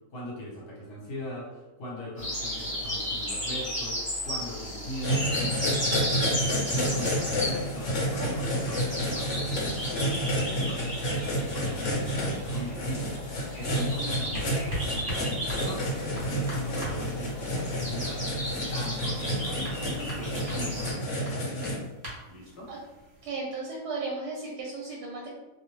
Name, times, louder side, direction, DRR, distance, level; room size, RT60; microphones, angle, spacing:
voice 1, 0.1-21.8 22.3-22.7, equal, 70° left, -4 dB, 1.3 m, -40 dB
sound 1, 2.2-20.9, equal, 5° left, 0.9 m, -35 dB
sound 2, 5.0-21.7, equal, 50° left, 1.0 m, -30 dB
sound 3, 13.5-23.3, equal, 50° right, 1.2 m, -42 dB
voice 2, 23.2-25.3, right 3 dB, 75° right, -3 dB, 1.1 m, -35 dB
2.8 x 2.0 x 3.0 m, 1.1 s
omnidirectional pair, 1.8 m